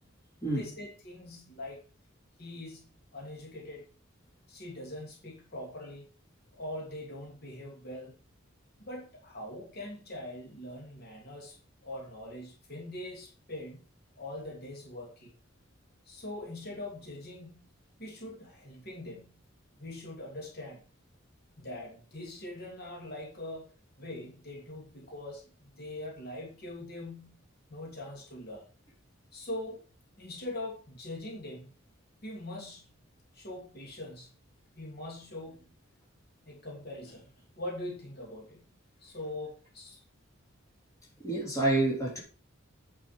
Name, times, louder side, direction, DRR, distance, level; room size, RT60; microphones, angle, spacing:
voice 1, 0.5-1.9 2.4-3.9 4.5-6.1 6.5-8.2 8.8-13.9 14.2-15.3 16.0-19.4 19.8-20.8 21.6-27.4 27.7-28.7 29.3-29.8 30.2-31.7 32.2-33.0 33.3-34.4 34.8-35.7 36.4-38.7 39.0-40.0, left 1 dB, 50° left, -2 dB, 3.0 m, -42 dB
voice 2, 41.2-42.2, right 2 dB, 15° left, -3 dB, 3.4 m, -28 dB
9.1 x 6.1 x 5.0 m, 0.37 s
head